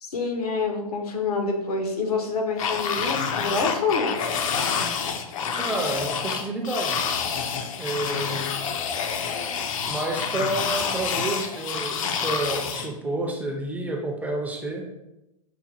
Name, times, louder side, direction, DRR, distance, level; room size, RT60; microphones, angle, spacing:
voice 1, 0.0-4.1, left 4 dB, 80° left, 3 dB, 0.8 m, -27 dB
sound 1, 2.6-12.9, left 6 dB, 60° left, 0.5 m, -28 dB
voice 2, 5.6-7.0 7.8-8.5 9.9-14.9, right 2 dB, 10° right, 1 dB, 0.4 m, -29 dB
5.8 x 2.2 x 2.8 m, 0.93 s
hypercardioid pair, 120°, 19 cm